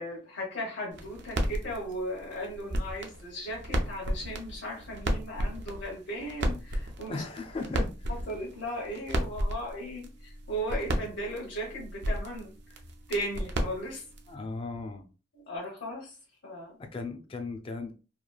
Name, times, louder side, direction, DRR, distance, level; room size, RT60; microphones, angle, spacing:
voice 1, 0.0-7.2 8.1-12.8 13.1-14.0 15.5-16.2 16.4-16.7, equal, 75° left, -3 dB, 0.9 m, -37 dB
sound 1, 0.9-14.3, right 1 dB, 65° right, 0.5 m, -34 dB
voice 2, 7.1-8.1 14.3-15.0 16.8-17.9, left 3 dB, 30° left, 6 dB, 0.3 m, -37 dB
2.9 x 2.3 x 2.3 m, 0.34 s
head